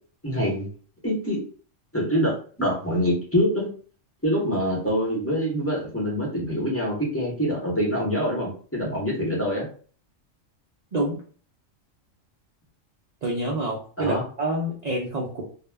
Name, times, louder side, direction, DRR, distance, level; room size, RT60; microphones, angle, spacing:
voice 1, 0.2-0.7 1.0-1.4 1.9-2.3 2.6-3.7 4.2-9.7 14.0-14.2, equal, 15° left, -5 dB, 0.7 m, -25 dB
voice 2, 13.2-15.4, right 1 dB, 70° right, -2 dB, 0.4 m, -27 dB
2.3 x 2.1 x 3.3 m, 0.42 s
omnidirectional pair, 1.4 m